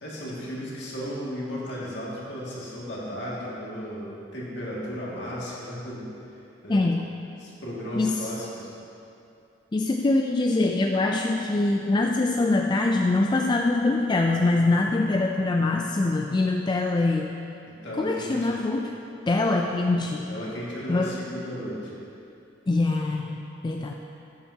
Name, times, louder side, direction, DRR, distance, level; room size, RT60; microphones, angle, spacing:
voice 1, 0.0-6.1 6.3-6.8 7.4-8.7 17.7-18.6 20.0-22.0, equal, 65° left, -6 dB, 2.1 m, -35 dB
voice 2, 6.7-7.1 8.0-8.3 9.7-17.4 18.0-18.9 19.3-20.2 20.9-21.2 22.7-23.9, left 2 dB, 25° left, 2 dB, 0.3 m, -24 dB
11.0 x 8.8 x 2.8 m, 2.7 s
head